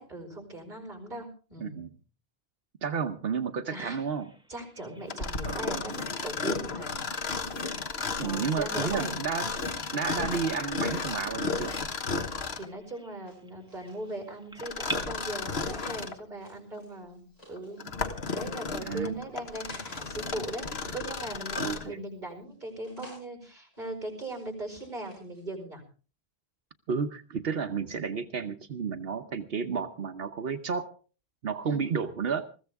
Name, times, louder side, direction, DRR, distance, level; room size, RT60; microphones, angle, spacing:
voice 1, 0.0-1.8 3.7-4.0 4.5-7.1 8.2-9.2 12.5-17.2 17.5-17.9 18.3-25.8 31.6-32.1, right 1 dB, 50° right, 4 dB, 5.1 m, -39 dB
voice 2, 2.8-4.3 5.4-6.0 8.2-9.5 9.9-11.8 18.8-19.1 21.6-22.0 26.9-30.9 31.4-32.5, right 6 dB, 70° right, 8 dB, 1.1 m, -32 dB
Bird vocalization bird call bird song, 3.8-14.9, right 1 dB, 5° right, 1.6 m, -48 dB
Mechanisms, 5.1-12.8 14.6-16.2 16.8-16.9 17.6-21.9, left 4 dB, 85° left, 1.6 m, -33 dB
sound 1, 7.0-10.2 11.3-12.4 13.3-14.5 15.2-16.1 16.4-17.9 18.5-20.0 20.3-21.9 22.4-23.2 23.7-25.4, equal, 40° left, 8.2 m, -56 dB
21.0 x 15.0 x 3.5 m, 0.37 s
omnidirectional pair, 1.0 m